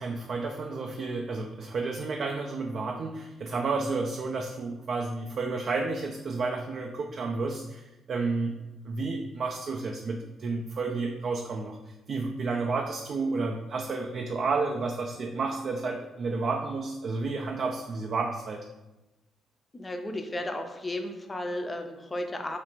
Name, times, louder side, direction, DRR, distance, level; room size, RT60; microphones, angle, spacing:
voice 1, 0.0-8.6 8.9-18.6, right 3 dB, 55° right, 1 dB, 0.3 m, -31 dB
voice 2, 19.7-22.6, left 1 dB, 20° left, 4 dB, 0.5 m, -34 dB
3.0 x 2.5 x 4.3 m, 1.0 s
cardioid pair, 90°, 0 cm